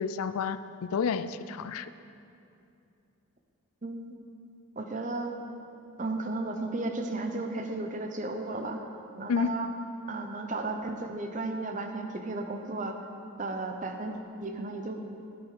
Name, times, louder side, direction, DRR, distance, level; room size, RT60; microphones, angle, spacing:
voice 1, 0.0-1.9 9.3-9.5, left 6 dB, 80° left, 14 dB, 0.4 m, -30 dB
voice 2, 3.8-4.2 4.8-5.4 6.0-8.8 9.2-9.7 10.1-13.0 13.4-15.0, right 2 dB, 35° right, 4 dB, 0.8 m, -34 dB
11.5 x 8.3 x 4.8 m, 2.6 s
head